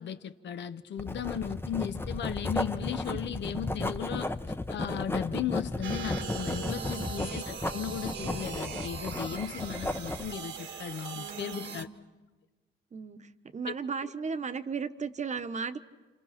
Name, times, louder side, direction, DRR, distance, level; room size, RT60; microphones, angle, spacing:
voice 1, 0.0-4.3 4.7-11.9 13.7-13.8, left 9 dB, 65° left, 10 dB, 1.1 m, -36 dB
Writing, 1.0-10.3, left 2 dB, 10° left, 0.8 m, -34 dB
sound 1, 5.8-11.8, right 7 dB, 65° right, 1.6 m, -40 dB
voice 2, 6.7-7.1 11.1-11.9 12.9-15.8, right 5 dB, 35° right, 9 dB, 1.2 m, -36 dB
30.0 x 27.0 x 5.9 m, 1.3 s
cardioid pair, 90°, 20 cm